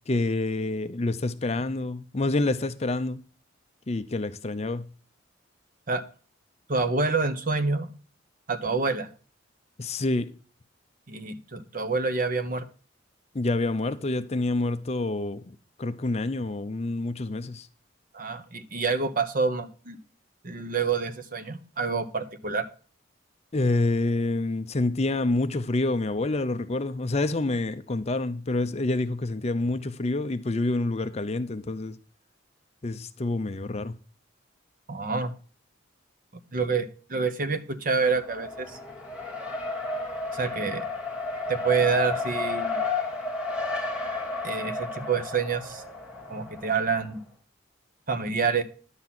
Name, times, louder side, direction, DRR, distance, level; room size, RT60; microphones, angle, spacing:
voice 1, 0.1-3.2 3.9-4.9 9.8-10.3 13.3-17.7 23.5-32.0 32.8-33.9, left 2 dB, 30° left, 0.5 m, -27 dB
voice 2, 6.7-7.9 8.5-9.1 11.1-12.6 18.1-20.0 20.4-22.7 34.9-35.3 36.5-38.8 40.3-40.8 41.5-42.8 44.4-45.8 46.3-47.2 48.1-48.6, right 4 dB, 45° right, 0.9 m, -27 dB
Race car auto racing, 38.1-47.1, left 3 dB, 5° right, 1.3 m, -32 dB
10.5 x 4.2 x 7.5 m
head